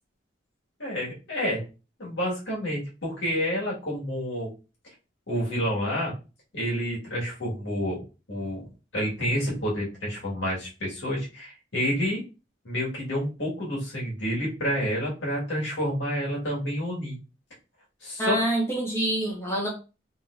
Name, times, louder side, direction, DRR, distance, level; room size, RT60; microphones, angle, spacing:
voice 1, 0.8-1.6 2.0-4.5 5.3-6.1 6.5-8.7 8.9-12.2 12.6-17.2 18.0-18.4, equal, 75° left, -4 dB, 2.0 m, -29 dB
voice 2, 18.2-19.7, right 1 dB, 15° left, -5 dB, 1.4 m, -26 dB
4.2 x 3.4 x 2.7 m, 0.31 s
head